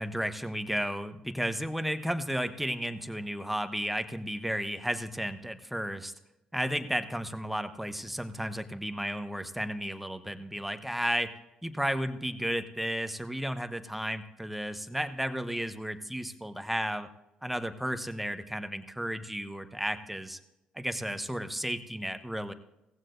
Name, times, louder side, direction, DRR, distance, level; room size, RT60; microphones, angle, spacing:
voice 1, 0.0-6.1 6.5-11.3 11.6-17.1 17.4-20.4 20.7-22.5, equal, 5° right, 10 dB, 1.1 m, -33 dB
17.5 x 15.5 x 2.7 m, 0.92 s
hypercardioid pair, 50°, 3 cm